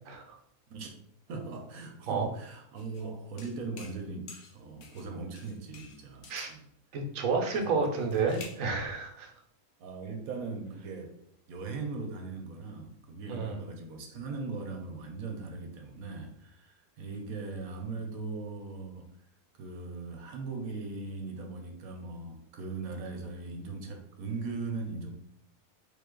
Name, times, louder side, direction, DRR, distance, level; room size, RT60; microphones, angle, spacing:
voice 1, 0.1-0.4 2.1-2.3 6.3-6.5 6.9-9.3 13.3-13.6, right 4 dB, 70° right, 2 dB, 1.2 m, -30 dB
voice 2, 1.3-4.3 4.5-6.6 7.6-8.2 9.8-11.1 11.5-19.1 19.6-25.1, right 3 dB, 90° right, 4 dB, 1.2 m, -39 dB
sound 1, 2.8-3.1 3.4-4.0 4.3-5.1 5.4-6.5 7.5-8.7, left 4 dB, 65° left, 1.0 m, -50 dB
3.7 x 3.7 x 3.7 m, 0.70 s
omnidirectional pair, 1.5 m